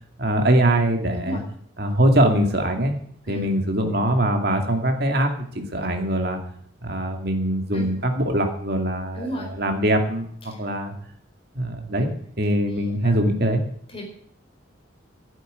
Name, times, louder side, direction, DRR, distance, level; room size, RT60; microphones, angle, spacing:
voice 1, 0.2-1.4 1.8-2.9 3.3-5.3 5.5-6.4 6.8-10.3 10.6-10.9 11.5-12.1 12.4-13.6, right 1 dB, 50° right, 4 dB, 2.3 m, -22 dB
voice 2, 9.1-9.5 10.5-10.6 13.0-13.2 13.9-14.0, equal, 25° left, 1 dB, 4.5 m, -33 dB
11.5 x 9.1 x 9.5 m, 0.65 s
head